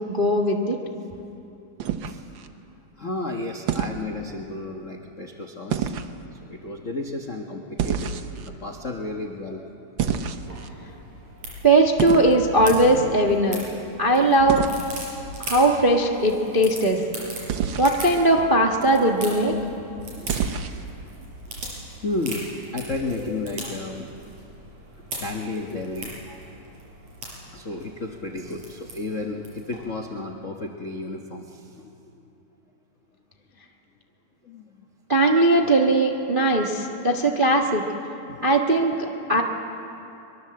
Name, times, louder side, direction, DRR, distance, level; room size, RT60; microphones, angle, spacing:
voice 1, 0.1-0.8 11.6-13.6 14.0-14.6 15.4-17.0 17.8-19.5 35.1-37.8 38.4-39.4, right 1 dB, 45° right, 0 dB, 0.6 m, -19 dB
sound 1, 1.8-2.5 3.7-4.0 5.7-6.1 7.8-8.5 10.0-10.7 12.0-12.3 14.5-14.8 17.5-18.0 20.3-20.8, right 8 dB, 90° right, 1.0 m, -27 dB
voice 2, 3.0-5.9 6.5-9.7 13.9-14.0 20.0-20.3 20.7-20.8 21.2-21.3 22.0-24.1 25.2-26.4 27.5-32.3 34.4-34.8 38.2-38.5, left 2 dB, 65° left, 2 dB, 0.7 m, -33 dB
sound 2, 10.4-29.8, right 2 dB, 60° right, 6.9 m, -39 dB
24.0 x 23.0 x 7.7 m, 2.9 s
omnidirectional pair, 3.5 m